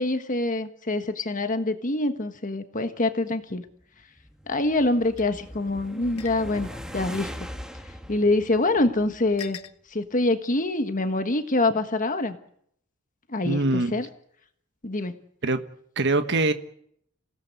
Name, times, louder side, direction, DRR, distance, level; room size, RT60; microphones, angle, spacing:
voice 1, 0.0-3.6 4.5-6.7 6.9-7.3 8.1-9.6 9.9-12.4 13.3-14.1 14.8-15.1, left 2 dB, 35° left, 8 dB, 1.4 m, -25 dB
sound 1, 4.0-9.5, equal, 5° right, 1.7 m, -41 dB
sound 2, 5.2-5.3 6.2-6.4 7.3-7.4 8.5-8.6 9.4-9.7, left 10 dB, 75° left, 1.3 m, -40 dB
voice 2, 13.4-13.9 15.4-15.6 16.0-16.5, right 2 dB, 50° right, 9 dB, 1.4 m, -23 dB
27.0 x 17.0 x 8.2 m, 0.69 s
head